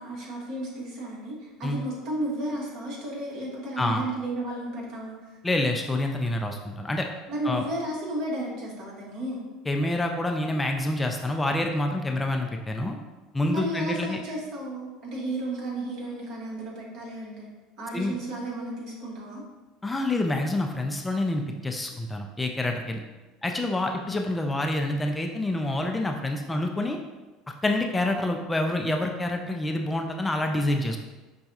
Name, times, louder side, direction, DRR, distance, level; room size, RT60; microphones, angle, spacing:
voice 1, 0.0-5.4 7.3-9.4 13.5-17.5 17.8-19.4, right 1 dB, 55° right, -4 dB, 1.4 m, -33 dB
voice 2, 5.4-7.1 7.4-7.6 9.7-12.9 13.3-14.2 17.9-18.2 19.8-23.0 23.4-27.0 27.6-31.0, left 1 dB, 15° left, 3 dB, 0.4 m, -27 dB
5.5 x 2.3 x 2.7 m, 1.2 s
hypercardioid pair, 75°, 0 cm